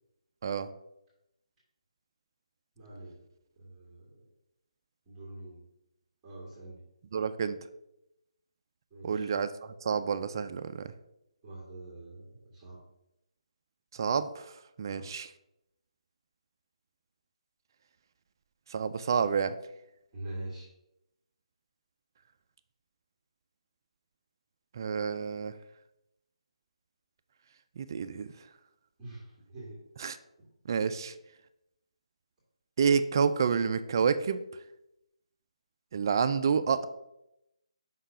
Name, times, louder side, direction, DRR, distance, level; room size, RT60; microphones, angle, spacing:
voice 1, 2.8-3.2 3.6-4.2 5.1-5.6 6.2-6.8 8.9-9.3 11.4-12.8 14.9-15.1 20.1-20.7 29.0-29.8 30.4-30.5, right 1 dB, 10° right, -8 dB, 2.0 m, -44 dB
voice 2, 7.1-7.6 9.0-9.5 9.8-10.9 13.9-15.3 18.7-19.6 24.7-25.5 27.8-28.3 30.0-30.2 30.7-31.1 32.8-34.4 35.9-36.9, right 6 dB, 35° right, 11 dB, 0.3 m, -29 dB
5.5 x 3.8 x 5.4 m, 0.85 s
hypercardioid pair, 165°, 4 cm